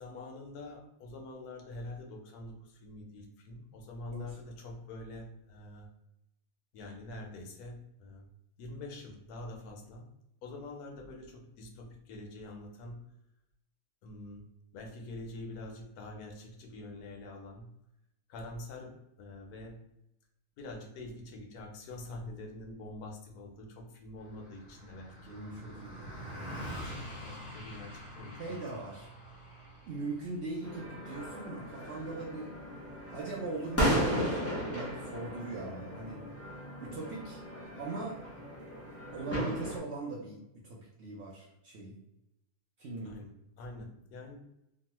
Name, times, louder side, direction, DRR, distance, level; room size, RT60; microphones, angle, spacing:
voice 1, 0.0-5.9 6.7-8.3 8.6-10.1 10.4-13.0 14.0-14.4 14.7-17.7 18.3-19.8 20.6-25.4 26.5-26.9 27.2-28.6 43.0-43.3 43.6-44.4, left 2 dB, 80° left, 1 dB, 1.2 m, -45 dB
Car passing by, 24.2-33.8, equal, 40° left, 1.0 m, -46 dB
voice 2, 25.3-26.6 28.4-29.1 29.9-32.5 33.1-36.2 36.8-37.4 37.7-38.2 39.1-42.0 42.8-43.2, right 3 dB, 65° right, -4 dB, 0.7 m, -41 dB
sound 1, 30.6-39.8, equal, 15° left, 0.5 m, -35 dB
3.0 x 2.2 x 2.9 m, 0.85 s
omnidirectional pair, 1.6 m